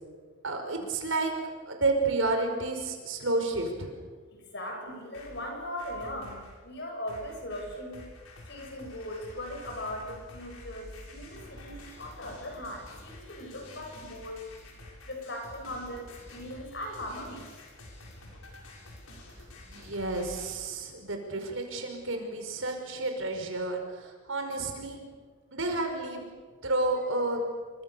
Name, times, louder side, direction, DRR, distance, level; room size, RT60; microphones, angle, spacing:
voice 1, 0.4-1.3 1.7-3.9 19.7-25.0 25.5-26.3 26.6-27.4, right 2 dB, 70° right, 4 dB, 5.3 m, -30 dB
voice 2, 4.3-8.0 8.5-14.4 15.0-17.5, left 1 dB, 55° left, 2 dB, 7.2 m, -39 dB
sound 1, 4.9-6.6 7.1-20.6, left 1 dB, 85° left, 6.1 m, -48 dB
28.0 x 25.0 x 6.9 m, 1.5 s
head